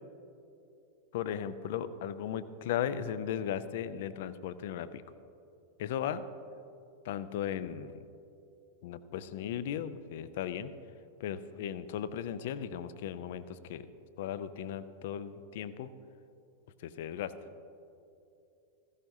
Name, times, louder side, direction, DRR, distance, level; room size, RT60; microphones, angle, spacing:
voice 1, 1.1-5.0 5.8-6.2 7.0-8.0 8.8-10.7 11.2-13.9 14.2-15.9 16.8-17.3, left 9 dB, 55° left, 14 dB, 0.5 m, -36 dB
16.0 x 15.0 x 2.8 m, 2.7 s
figure-of-eight pair, 90°, 0 cm